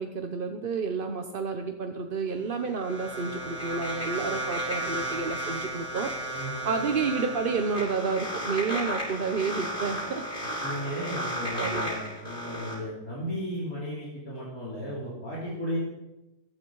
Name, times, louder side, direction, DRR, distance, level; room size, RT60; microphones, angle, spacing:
voice 1, 0.0-6.1 6.4-10.6 11.5-11.9, right 5 dB, 45° right, 5 dB, 0.8 m, -30 dB
sound 1, 2.3-12.7, right 1 dB, 30° left, 7.3 m, -34 dB
voice 2, 10.6-15.8, equal, 55° left, -7 dB, 3.9 m, -35 dB
16.0 x 12.0 x 4.7 m, 0.96 s
omnidirectional pair, 1.9 m